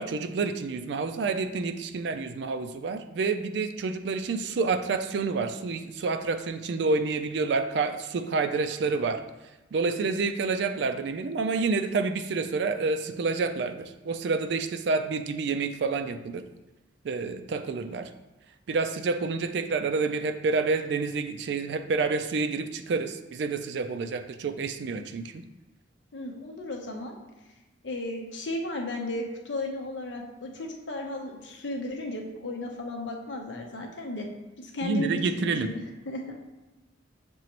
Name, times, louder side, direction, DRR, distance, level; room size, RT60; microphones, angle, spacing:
voice 1, 0.0-9.2 9.7-16.4 17.0-18.1 18.7-25.4 34.8-35.7, right 4 dB, 65° right, 8 dB, 0.3 m, -28 dB
voice 2, 26.1-27.2 27.8-34.3 34.6-36.3, left 1 dB, 75° left, 2 dB, 0.7 m, -35 dB
6.1 x 2.9 x 2.9 m, 1.1 s
head